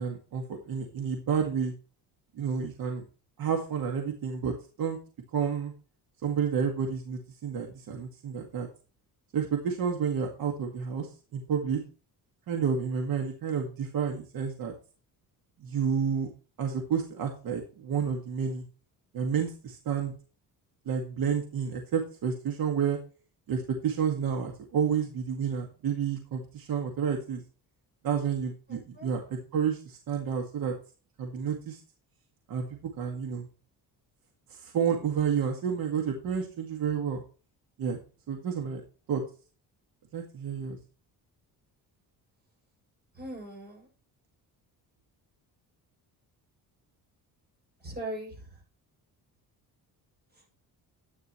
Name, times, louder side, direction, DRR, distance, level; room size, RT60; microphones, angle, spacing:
voice 1, 0.0-1.7 2.4-3.0 3.4-5.0 5.3-5.7 6.2-8.7 9.3-11.8 12.5-14.7 15.6-16.3 16.6-18.6 19.1-20.1 20.9-23.0 23.5-27.4 28.0-30.7 31.2-31.8 32.5-33.5 34.5-37.2 37.8-38.0 38.3-38.8 39.1-39.2 40.1-40.8, right 7 dB, 65° right, 2 dB, 2.0 m, -30 dB
voice 2, 28.7-29.1 43.1-43.9 47.8-48.6 50.3-50.4, right 1 dB, 25° right, -1 dB, 7.2 m, -40 dB
13.0 x 9.5 x 3.1 m, 0.36 s
cardioid pair, 150°, 38 cm